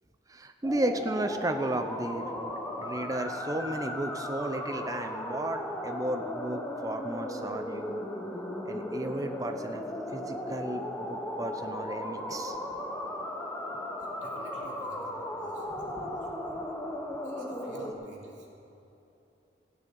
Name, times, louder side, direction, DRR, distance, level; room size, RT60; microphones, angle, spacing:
voice 1, 0.3-8.0 8.6-9.8 10.1-12.6 15.9-16.1, right 1 dB, 20° right, 7 dB, 0.6 m, -34 dB
sound 1, 0.6-17.9, left 1 dB, 10° left, 1.0 m, -36 dB
voice 2, 14.0-16.6 17.2-18.5, right 1 dB, 85° right, -3 dB, 2.7 m, -50 dB
15.0 x 6.3 x 8.5 m, 2.9 s
head